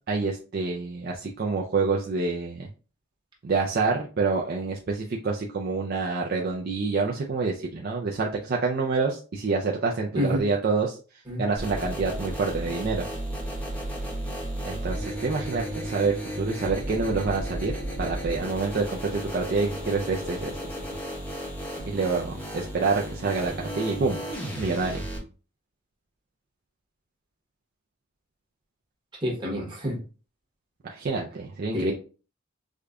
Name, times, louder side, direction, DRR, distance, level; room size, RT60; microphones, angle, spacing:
voice 1, 0.1-2.7 3.4-11.0 11.4-13.0 14.7-17.7 18.0-20.6 21.8-24.2 24.6-25.0 30.8-31.9, right 4 dB, 45° right, -1 dB, 0.4 m, -27 dB
sound 1, 11.6-25.2, right 1 dB, 10° left, 0.8 m, -34 dB
voice 2, 29.2-30.0 31.7-31.9, equal, 25° right, -3 dB, 1.1 m, -27 dB
4.9 x 2.2 x 2.4 m, 0.36 s
head